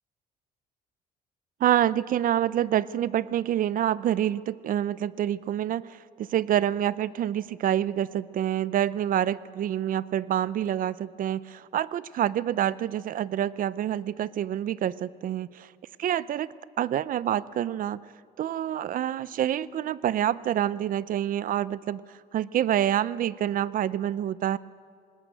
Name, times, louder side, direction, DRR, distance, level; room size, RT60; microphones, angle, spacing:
voice 1, 1.6-15.7 16.0-16.5 16.8-18.0 18.4-22.0 22.3-24.6, right 11 dB, 55° right, 19 dB, 0.6 m, -27 dB
20.0 x 19.0 x 9.1 m, 2.2 s
cardioid pair, 120°, 17 cm